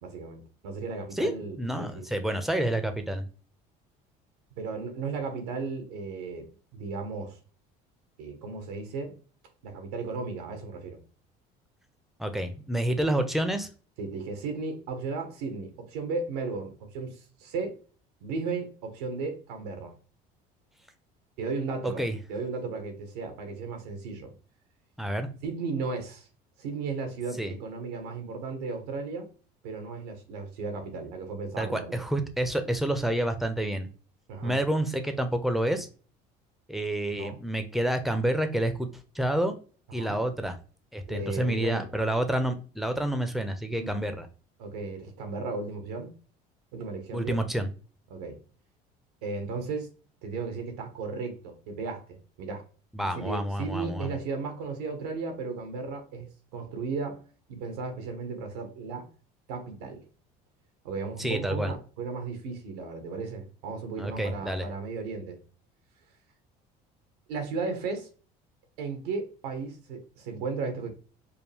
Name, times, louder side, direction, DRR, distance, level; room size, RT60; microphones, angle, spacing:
voice 1, 0.0-2.0 4.6-6.5 6.7-7.4 8.2-9.1 9.6-11.0 14.0-17.8 18.2-19.9 21.4-24.3 25.4-26.3 26.6-29.3 29.6-32.0 34.3-34.6 37.2-37.4 39.9-40.2 41.1-41.9 43.7-44.1 44.6-46.1 46.7-47.4 48.1-48.4 49.2-49.9 50.2-52.6 53.0-57.2 57.5-59.1 59.5-60.0 60.8-65.4 67.3-68.1 68.8-70.9, right 4 dB, 90° right, 1.3 m, -35 dB
voice 2, 1.1-3.3 12.2-13.7 21.8-22.2 25.0-25.3 27.4-27.5 31.6-33.9 34.4-35.9 36.7-38.9 39.1-39.6 39.9-40.6 40.9-44.3 47.1-47.7 52.9-54.2 61.2-61.7 64.0-64.7, right 1 dB, ahead, 0.8 m, -28 dB
5.3 x 2.2 x 3.4 m
supercardioid pair, 90°, 19 cm